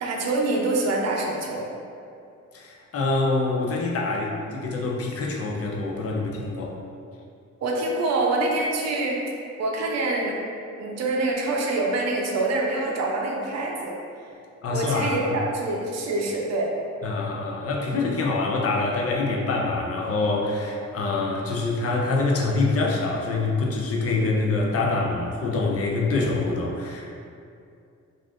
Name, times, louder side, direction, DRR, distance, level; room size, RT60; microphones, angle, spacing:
voice 1, 0.0-1.6 7.6-9.2 9.6-10.4 10.8-13.9 14.7-16.7, right 2 dB, 60° right, -1 dB, 0.5 m, -25 dB
voice 2, 2.5-6.7 14.6-15.4 17.0-27.1, left 3 dB, 50° left, -2 dB, 0.5 m, -25 dB
2.5 x 2.4 x 3.5 m, 2.5 s
cardioid pair, 95°, 30 cm